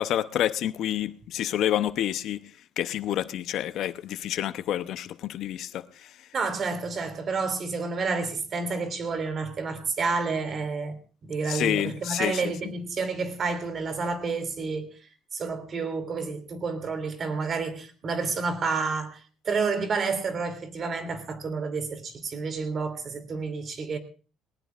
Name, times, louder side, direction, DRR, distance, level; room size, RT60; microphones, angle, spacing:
voice 1, 0.0-2.4 2.8-5.8 11.5-12.5, left 11 dB, 55° left, 0.7 m, -28 dB
voice 2, 6.3-15.0 15.3-24.0, right 4 dB, 35° right, 2.8 m, -30 dB
20.5 x 19.0 x 2.4 m
cardioid pair, 140°, 0 cm